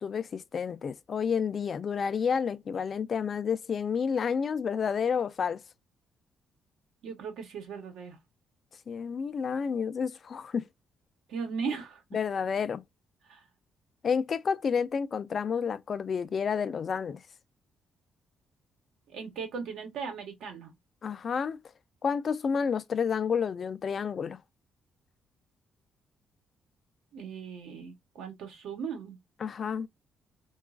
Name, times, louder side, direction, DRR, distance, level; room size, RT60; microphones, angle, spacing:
voice 1, 0.0-5.6 8.9-10.6 12.1-12.8 14.0-17.2 21.0-21.6 22.0-24.4 29.4-29.9, left 6 dB, 50° left, 0.3 m, -30 dB
voice 2, 7.0-8.2 11.3-12.0 13.3-13.4 19.1-20.7 27.1-29.2, right 5 dB, 80° right, 0.9 m, -37 dB
3.0 x 2.3 x 2.3 m
cardioid pair, 90°, 0 cm